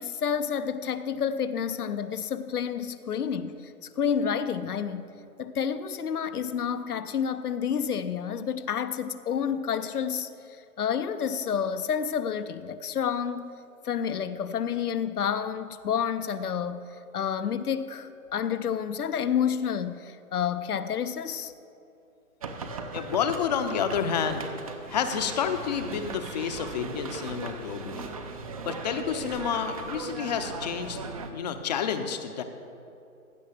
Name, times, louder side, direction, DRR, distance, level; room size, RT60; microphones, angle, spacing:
voice 1, 0.0-5.1 5.4-13.5 13.8-21.5, left 7 dB, 80° left, 0.8 m, -29 dB
sound 1, 22.4-31.3, right 4 dB, 25° right, 0.5 m, -38 dB
voice 2, 22.9-24.5 24.9-28.1 28.6-31.0 31.3-32.4, left 7 dB, 30° left, 0.6 m, -29 dB
15.5 x 5.6 x 6.8 m
figure-of-eight pair, 135°, 44 cm